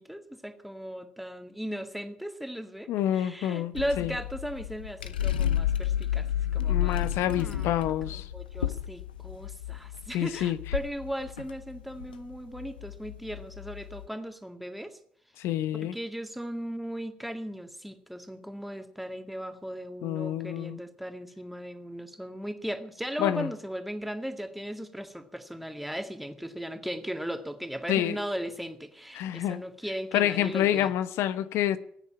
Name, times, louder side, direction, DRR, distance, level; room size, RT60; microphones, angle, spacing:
voice 1, 0.0-15.0 15.7-30.9, equal, ahead, 2.1 m, -37 dB
voice 2, 2.9-4.1 6.7-8.3 10.1-10.6 15.4-15.9 20.0-20.8 23.2-23.5 27.9-28.2 29.1-29.6 30.1-31.8, left 12 dB, 70° left, 0.9 m, -28 dB
sound 1, 3.7-14.1, left 11 dB, 90° left, 0.6 m, -31 dB
16.0 x 9.6 x 8.7 m
hypercardioid pair, 50°, 5 cm